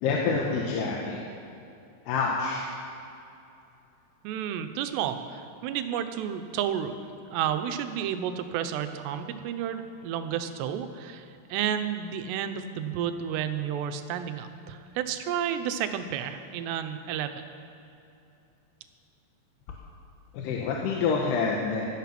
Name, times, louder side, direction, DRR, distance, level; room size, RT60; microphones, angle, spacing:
voice 1, 0.0-1.2 2.1-2.7 20.3-21.9, left 4 dB, 75° left, -1 dB, 3.1 m, -27 dB
voice 2, 4.2-7.0 7.3-17.4, right 9 dB, 80° right, 8 dB, 2.9 m, -31 dB
17.0 x 11.0 x 5.9 m, 2.7 s
omnidirectional pair, 4.9 m